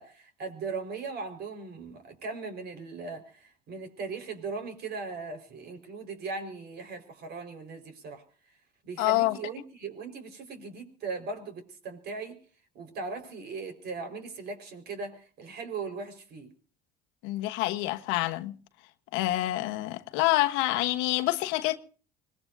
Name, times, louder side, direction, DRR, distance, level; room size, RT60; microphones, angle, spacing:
voice 1, 0.0-8.2 8.8-12.4 12.7-16.5, right 4 dB, 55° right, 4.6 m, -38 dB
voice 2, 9.0-9.4 17.2-18.5 19.1-21.8, left 17 dB, 80° left, 1.2 m, -27 dB
25.0 x 20.0 x 2.7 m
supercardioid pair, 100°, 20 cm